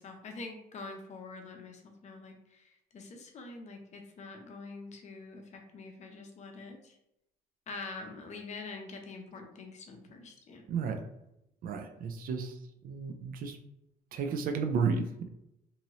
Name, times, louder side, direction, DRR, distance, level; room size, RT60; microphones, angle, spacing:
voice 1, 0.0-7.0 7.7-10.6, left 3 dB, 45° left, 3 dB, 0.6 m, -45 dB
voice 2, 10.7-11.0 11.6-12.5 12.8-13.6 14.1-15.3, right 5 dB, 55° right, 6 dB, 0.5 m, -32 dB
2.9 x 2.7 x 2.7 m, 0.84 s
cardioid pair, 110°, 17 cm